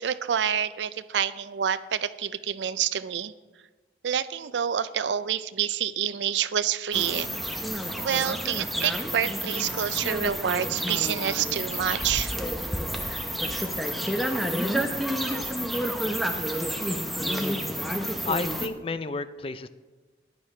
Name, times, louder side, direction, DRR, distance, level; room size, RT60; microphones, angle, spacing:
voice 1, 0.0-3.3 4.0-7.4 8.0-12.3, right 9 dB, 80° right, 14 dB, 0.4 m, -28 dB
sound 1, 6.9-18.7, equal, ahead, 0.7 m, -29 dB
voice 2, 18.2-19.7, left 3 dB, 30° left, 13 dB, 0.4 m, -31 dB
14.5 x 10.5 x 3.2 m, 1.3 s
head